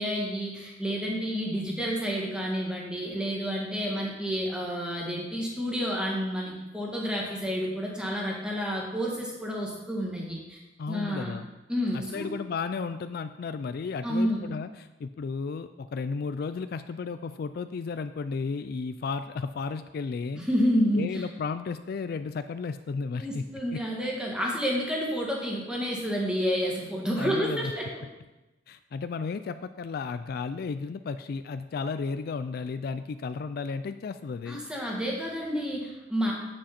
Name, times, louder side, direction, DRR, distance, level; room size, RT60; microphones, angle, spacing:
voice 1, 0.0-10.6 10.9-11.3 11.7-12.3 14.0-14.4 20.4-21.3 23.2-27.9 34.5-36.3, equal, 5° right, -3 dB, 1.8 m, -29 dB
voice 2, 10.8-11.5 11.9-20.4 20.9-23.4 27.2-27.7 28.7-34.6, left 4 dB, 55° left, 11 dB, 0.3 m, -33 dB
8.5 x 7.6 x 4.3 m, 1.0 s
head